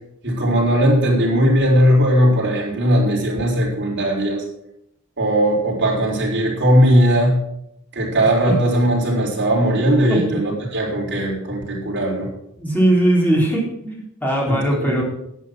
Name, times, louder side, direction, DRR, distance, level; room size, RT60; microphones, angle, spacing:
voice 1, 0.2-4.4 5.2-7.4 7.9-12.3 14.5-15.0, equal, 55° right, -3 dB, 4.3 m, -18 dB
voice 2, 12.6-15.0, right 1 dB, 10° left, -3 dB, 3.7 m, -19 dB
11.0 x 8.4 x 6.2 m, 0.77 s
head